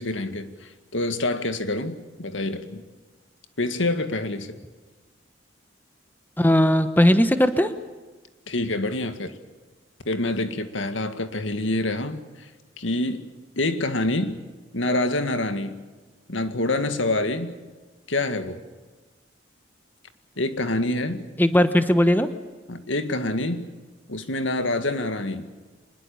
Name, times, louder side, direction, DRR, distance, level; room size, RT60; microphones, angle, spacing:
voice 1, 0.0-2.8 3.6-4.6 8.5-9.4 10.1-12.5 12.8-13.3 13.6-14.4 14.7-15.8 16.3-17.5 18.1-18.6 20.4-21.2 22.7-23.7 24.1-25.5, left 2 dB, 80° left, 9 dB, 2.0 m, -26 dB
voice 2, 6.4-7.7 21.4-22.3, equal, 10° left, 9 dB, 1.1 m, -18 dB
25.0 x 21.5 x 7.1 m, 1.3 s
head